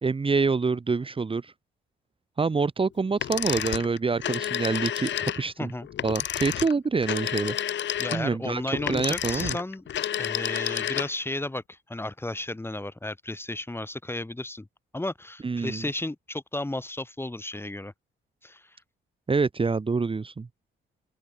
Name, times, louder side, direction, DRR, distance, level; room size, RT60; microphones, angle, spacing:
voice 1, 0.0-1.5 2.4-5.7 6.0-7.6 8.1-9.6 15.4-15.8 19.3-20.5, right 4 dB, 25° right, 1.9 m, -26 dB
sound 1, 3.2-11.3, left 10 dB, 65° left, 3.4 m, -30 dB
voice 2, 8.0-9.8 10.2-14.7 14.9-17.9 18.4-18.8, left 2 dB, 10° left, 6.0 m, -33 dB
open air
cardioid pair, 90°, 20 cm